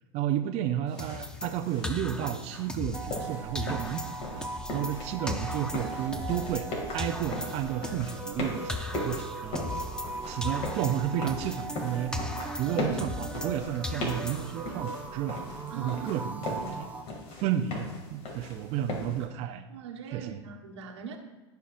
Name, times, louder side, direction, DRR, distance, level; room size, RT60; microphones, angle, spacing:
voice 1, 0.1-4.5 4.7-6.7 6.9-9.6 10.3-12.2 12.6-15.5 15.8-16.9 17.4-19.7 20.1-20.4, right 10 dB, 50° right, 5 dB, 0.6 m, -32 dB
sound 1, 0.9-19.2, left 1 dB, 45° left, 2.4 m, -39 dB
sound 2, 1.0-3.3 3.6-6.7 7.0-10.2 10.4-13.6 13.8-14.7, left 2 dB, 5° left, 0.7 m, -38 dB
sound 3, 2.9-17.0, right 3 dB, 10° right, 1.1 m, -39 dB
voice 2, 15.7-16.2 19.7-21.2, right 6 dB, 85° right, 2 dB, 1.3 m, -42 dB
17.0 x 5.9 x 2.5 m, 1.2 s
supercardioid pair, 110°, 14 cm